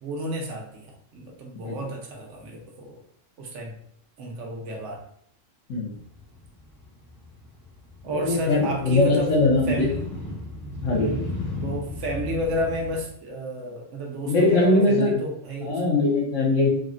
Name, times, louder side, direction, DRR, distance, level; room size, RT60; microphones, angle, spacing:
voice 1, 0.0-3.0 3.4-3.8 4.2-5.0 8.0-9.3 9.7-10.0 11.0-15.8, right 1 dB, 75° right, 0 dB, 1.1 m, -31 dB
Motorcycle, 5.9-13.0, left 2 dB, 20° left, 0.6 m, -36 dB
voice 2, 8.1-9.9 10.8-11.1 14.2-15.2 15.6-16.7, left 2 dB, 80° left, -4 dB, 1.1 m, -21 dB
3.5 x 2.1 x 2.5 m, 0.66 s
omnidirectional pair, 1.3 m